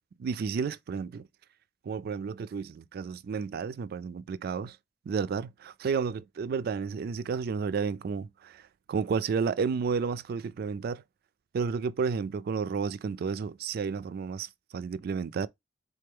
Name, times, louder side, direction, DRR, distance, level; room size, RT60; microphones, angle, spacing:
voice 1, 0.2-1.3 1.8-4.8 5.1-8.6 8.9-11.0 11.5-15.5, right 5 dB, 55° right, 0.3 m, -31 dB
3.7 x 3.3 x 3.3 m
head